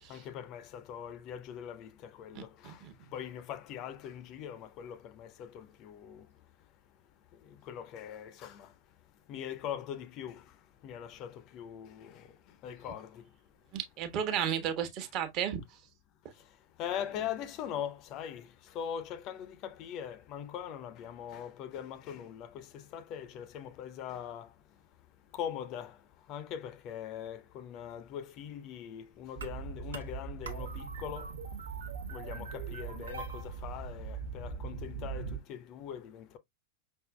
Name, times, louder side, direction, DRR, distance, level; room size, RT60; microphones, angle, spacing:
voice 1, 0.1-1.9 2.2-2.5 3.1-6.2 7.7-8.7 9.3-10.4 10.8-12.1 12.6-13.2 16.8-18.4 18.8-22.6 22.9-24.5 25.4-25.9 26.3-31.3 32.1-36.4, left 9 dB, 40° left, 0.6 m, -41 dB
voice 2, 2.3-3.1 13.7-15.6, right 9 dB, 40° right, 1.1 m, -34 dB
sound 1, 29.3-35.4, right 5 dB, 70° right, 0.9 m, -40 dB
5.7 x 3.6 x 2.2 m
figure-of-eight pair, 90°, 0 cm